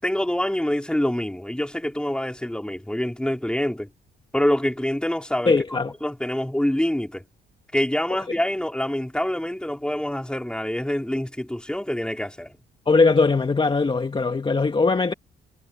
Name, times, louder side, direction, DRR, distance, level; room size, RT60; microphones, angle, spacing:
voice 1, 0.0-3.9 4.3-5.5 6.0-7.2 7.7-12.6, left 1 dB, 5° left, 4.9 m, -26 dB
voice 2, 5.5-5.9 8.3-8.4 12.9-15.1, left 4 dB, 25° left, 2.3 m, -20 dB
cardioid pair, 90°, 20 cm